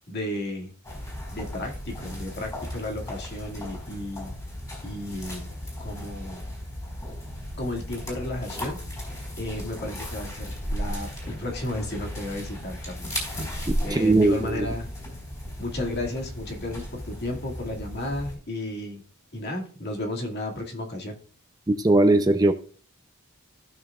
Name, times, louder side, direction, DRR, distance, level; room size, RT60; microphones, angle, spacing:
voice 1, 0.1-0.7 1.3-4.3 4.8-5.5 5.8-6.4 7.6-9.0 9.4-13.1 13.8-14.9 15.6-19.0 19.3-21.2, left 1 dB, 50° left, 0 dB, 2.2 m, -33 dB
sound 1, 0.8-18.3, equal, 15° left, 4.3 m, -35 dB
voice 2, 13.7-14.7 21.8-22.5, right 2 dB, 20° right, 8 dB, 0.6 m, -20 dB
15.5 x 6.2 x 2.4 m, 0.42 s
head